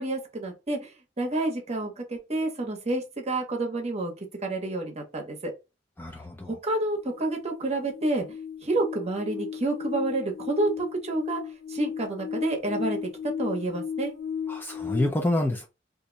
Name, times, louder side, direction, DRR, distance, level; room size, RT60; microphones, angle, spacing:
voice 1, 0.0-4.1 4.4-5.5 6.5-8.2 8.6-11.4 11.7-14.1, right 2 dB, 35° right, 1.0 m, -29 dB
voice 2, 6.0-6.5 14.5-15.7, left 1 dB, 10° left, 0.4 m, -27 dB
sound 1, 7.0-15.1, left 7 dB, 80° left, 1.1 m, -35 dB
2.6 x 2.2 x 3.8 m
head